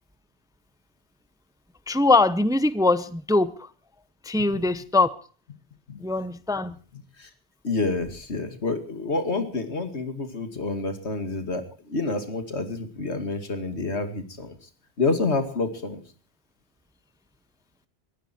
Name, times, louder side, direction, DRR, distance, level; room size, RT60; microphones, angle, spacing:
voice 1, 1.9-3.7 4.2-5.1 6.0-6.7, left 2 dB, 5° right, 15 dB, 0.6 m, -22 dB
voice 2, 7.6-14.7 15.0-16.0, left 3 dB, 90° left, 9 dB, 2.5 m, -28 dB
21.5 x 15.0 x 4.4 m, 0.40 s
omnidirectional pair, 1.1 m